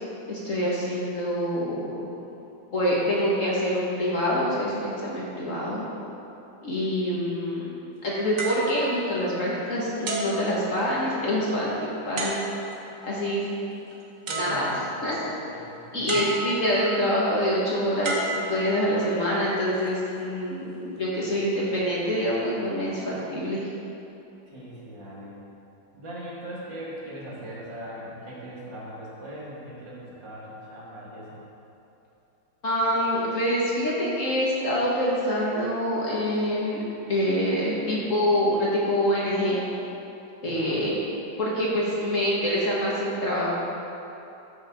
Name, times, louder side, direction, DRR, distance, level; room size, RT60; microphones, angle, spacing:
voice 1, 0.3-2.0 2.7-5.8 6.6-7.7 8.0-12.4 13.0-13.5 14.3-14.7 15.0-15.3 15.9-23.7 32.6-36.8 37.1-39.6 40.4-40.9 41.4-43.5, equal, 45° left, -6 dB, 1.8 m, -26 dB
sound 1, 8.4-9.6 10.1-11.2 12.2-12.9 13.9-14.0 14.3-15.1 16.1-16.9 18.0-19.2 19.9-20.1, right 2 dB, 50° right, 1.3 m, -32 dB
voice 2, 14.3-16.3 24.5-25.4 25.9-31.4 40.4-40.8, equal, 65° right, -6 dB, 2.5 m, -40 dB
13.0 x 6.5 x 3.7 m, 2.9 s
omnidirectional pair, 2.1 m